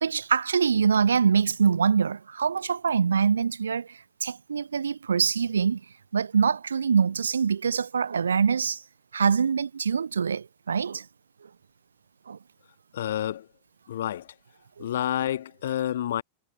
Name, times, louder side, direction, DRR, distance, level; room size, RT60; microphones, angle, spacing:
voice 1, 0.0-5.8 6.1-8.8 9.1-11.1 12.3-12.4 14.8-14.9, right 6 dB, 70° right, 0.6 m, -24 dB
voice 2, 12.9-13.5 13.9-14.3 14.8-16.2, left 11 dB, 60° left, 1.4 m, -29 dB
figure-of-eight pair, 90°, 0 cm